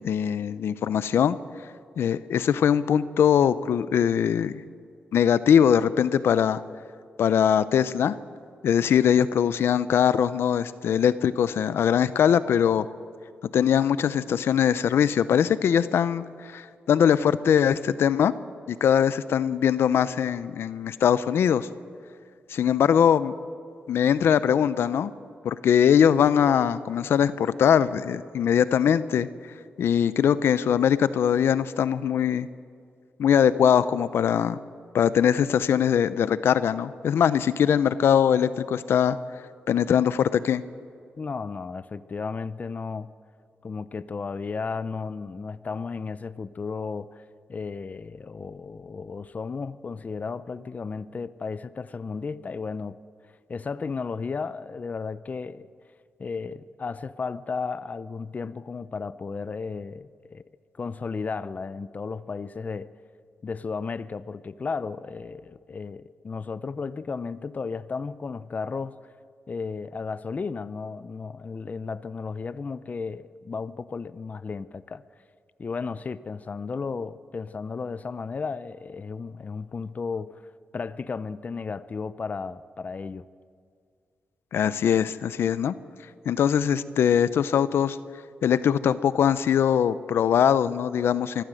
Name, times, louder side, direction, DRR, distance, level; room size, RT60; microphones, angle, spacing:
voice 1, 0.0-1.4 2.0-4.5 5.1-6.6 7.2-8.1 8.6-12.9 13.5-18.3 18.7-21.7 22.5-23.3 23.9-25.1 25.4-29.3 29.8-32.5 33.2-34.6 34.9-39.2 39.7-40.6 84.5-85.7 86.3-88.0 88.4-91.4, left 8 dB, 80° left, 0.7 m, -21 dB
voice 2, 41.2-43.1 43.6-47.2 47.5-53.0 53.5-55.7 56.2-60.4 60.8-62.9 63.4-69.0 69.5-75.0 75.6-80.4 80.7-83.3, left 4 dB, 40° left, 0.6 m, -34 dB
24.5 x 15.0 x 7.7 m
cardioid pair, 85°, 4 cm